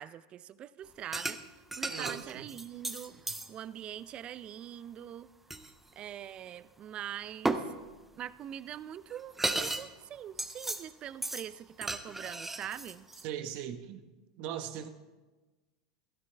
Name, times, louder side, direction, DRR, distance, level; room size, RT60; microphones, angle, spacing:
voice 1, 0.0-1.4 1.8-5.3 6.0-7.7 8.1-13.1, right 10 dB, 40° right, 17 dB, 0.5 m, -43 dB
sound 1, 1.1-1.4 1.7-3.5 5.5-5.7 7.5-7.6 8.8-8.9 9.1-9.9 10.1-10.8 11.2-11.5 11.8-13.2, right 2 dB, 10° right, 0.9 m, -34 dB
voice 2, 1.9-2.5 13.2-14.0 14.4-14.9, right 10 dB, 60° right, 8 dB, 1.1 m, -39 dB
15.5 x 12.5 x 3.4 m, 1.2 s
hypercardioid pair, 100°, 3 cm